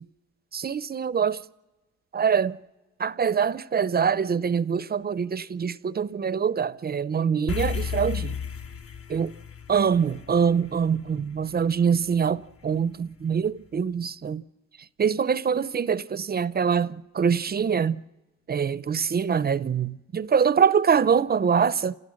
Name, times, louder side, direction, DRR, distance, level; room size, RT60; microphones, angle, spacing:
voice 1, 0.5-1.4 2.1-2.6 3.0-8.4 9.1-9.4 9.7-14.4 15.0-18.0 18.5-22.0, right 7 dB, 30° right, 0.6 m, -24 dB
sound 1, 7.5-12.0, left 6 dB, 50° left, 1.1 m, -34 dB
28.5 x 16.0 x 6.4 m
cardioid pair, 90°, 30 cm